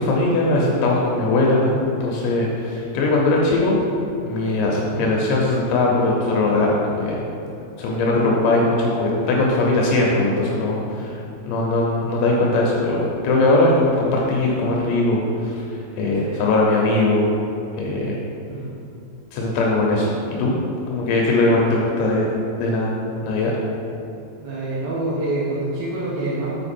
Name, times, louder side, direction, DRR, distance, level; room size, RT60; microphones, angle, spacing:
voice 1, 0.0-3.8 4.2-7.2 7.8-15.6 16.0-17.2 17.8-18.2 19.3-20.6 20.9-23.0 23.2-23.5, left 2 dB, 80° left, -2 dB, 3.1 m, -20 dB
voice 2, 8.1-8.4 16.2-16.4 18.5-18.8 24.4-26.5, right 2 dB, 70° right, -6 dB, 2.4 m, -27 dB
7.7 x 5.2 x 4.2 m, 2.7 s
omnidirectional pair, 5.3 m